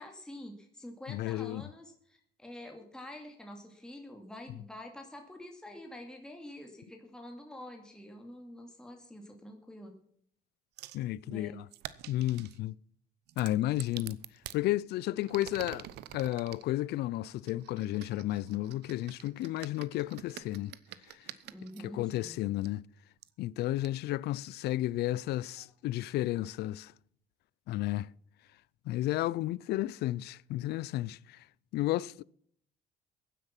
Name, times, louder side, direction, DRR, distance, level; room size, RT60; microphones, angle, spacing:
voice 1, 0.0-10.0 11.3-11.6 21.5-22.4 25.6-25.7, left 1 dB, 5° left, 2.5 m, -47 dB
voice 2, 1.1-1.6 10.9-11.7 12.1-12.8 13.4-14.2 14.5-20.8 21.1-21.3 21.8-22.8 23.4-26.9 27.7-28.1 28.9-31.4 31.7-32.2, left 15 dB, 75° left, 0.5 m, -32 dB
sound 1, 10.8-11.0 11.7-12.6 13.3-14.6 15.2-16.6 17.4-21.8 22.6-22.7 23.2-23.3 23.8-23.9, right 14 dB, 80° right, 0.9 m, -47 dB
15.5 x 10.0 x 5.9 m
cardioid pair, 110°, 17 cm